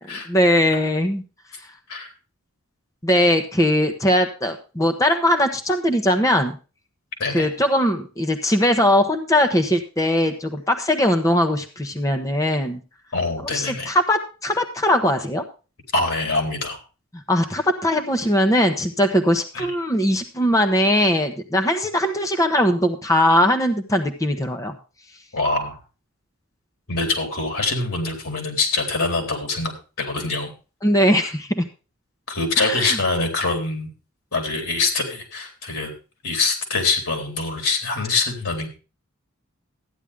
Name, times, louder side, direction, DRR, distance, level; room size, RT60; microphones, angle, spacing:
voice 1, 0.3-1.2 3.0-6.6 7.3-12.8 13.5-15.4 17.3-24.7 30.8-31.6 32.6-33.0, left 1 dB, 15° left, 5 dB, 1.0 m, -20 dB
voice 2, 13.1-13.9 15.9-16.8 19.5-19.7 25.3-25.8 26.9-30.5 32.3-33.9 34.3-35.9 36.2-38.7, left 3 dB, 90° left, 3 dB, 4.1 m, -24 dB
13.5 x 10.0 x 3.6 m, 0.32 s
head